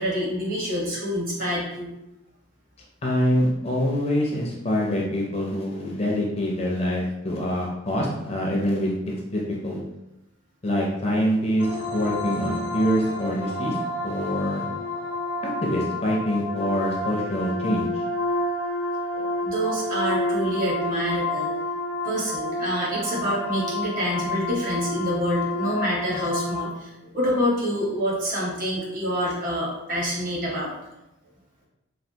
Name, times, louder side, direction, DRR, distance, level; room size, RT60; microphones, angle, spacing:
voice 1, 0.0-1.9 19.1-21.5 22.0-30.7, equal, 45° right, -5 dB, 1.1 m, -27 dB
voice 2, 3.0-9.8 10.6-13.8 14.0-14.7 15.6-18.0, equal, 30° left, -2 dB, 0.4 m, -25 dB
sound 1, 11.6-26.6, left 1 dB, 80° left, 0.6 m, -29 dB
3.3 x 2.3 x 2.7 m, 0.93 s
head